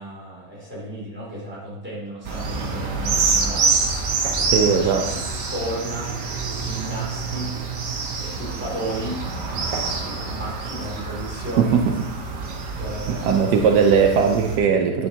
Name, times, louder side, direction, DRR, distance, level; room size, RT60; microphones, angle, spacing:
voice 1, 0.0-3.8 4.4-6.1 6.5-7.5 8.2-9.2 9.5-11.8 12.1-13.3, right 1 dB, 5° right, -7 dB, 2.6 m, -34 dB
sound 1, 2.2-14.6, right 4 dB, 60° right, 1.2 m, -27 dB
voice 2, 4.5-5.1 13.3-15.1, right 6 dB, 85° right, 2 dB, 1.2 m, -18 dB
9.2 x 5.3 x 2.8 m, 0.89 s
omnidirectional pair, 1.7 m